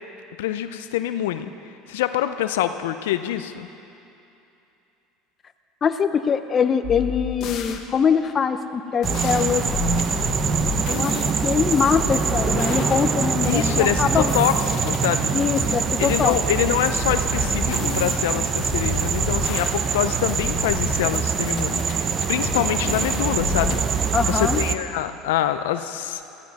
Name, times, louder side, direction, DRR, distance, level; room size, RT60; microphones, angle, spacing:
voice 1, 0.4-1.5 1.9-3.7 13.5-14.5 14.8-15.3 16.0-26.3, left 12 dB, 85° left, 10 dB, 0.5 m, -25 dB
voice 2, 5.8-9.6 10.9-14.3 15.3-16.3 24.1-24.6, left 6 dB, 35° left, 9 dB, 0.7 m, -23 dB
sound 1, 6.8-7.8 9.0-11.3 11.7-15.1 15.6-16.4 16.9-20.0 20.3-21.2 21.5-23.8, left 7 dB, 55° left, 1.2 m, -31 dB
sound 2, 9.0-24.8, right 6 dB, 35° right, 0.8 m, -24 dB
17.0 x 13.5 x 4.2 m, 2.8 s
supercardioid pair, 100°, 0 cm